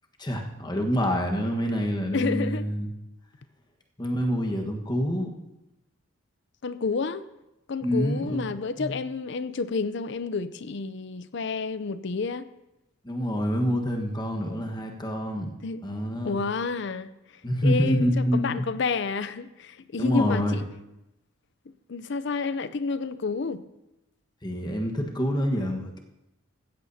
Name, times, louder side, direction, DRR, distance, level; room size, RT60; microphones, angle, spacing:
voice 1, 0.2-2.9 4.0-5.3 7.8-8.5 8.8-9.0 13.0-15.5 15.8-16.4 17.4-18.7 20.0-20.6 24.4-26.0, equal, 20° left, 1.3 m, -27 dB
voice 2, 2.1-2.6 6.6-7.2 7.7-12.5 15.6-15.9 16.2-17.1 17.6-20.7 21.9-23.6, left 4 dB, 60° left, 0.5 m, -30 dB
15.5 x 14.0 x 2.8 m
head